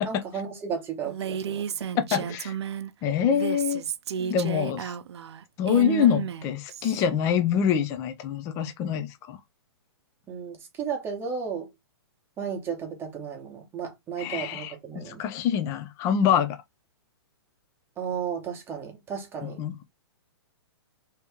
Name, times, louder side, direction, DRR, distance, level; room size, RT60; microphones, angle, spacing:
voice 1, 0.1-1.7 4.2-4.3 10.3-11.7 12.4-15.2 18.0-19.6, right 6 dB, 15° right, 1.0 m, -34 dB
Female speech woman speaking, 1.1-2.9 3.3-7.0, right 8 dB, 75° right, 0.5 m, -32 dB
voice 2, 2.1-2.5 3.0-3.8 4.3-4.9 5.6-9.4 14.2-16.6 19.4-19.8, left 8 dB, 20° left, 0.4 m, -25 dB
2.9 x 2.8 x 3.5 m
hypercardioid pair, 145°, 14 cm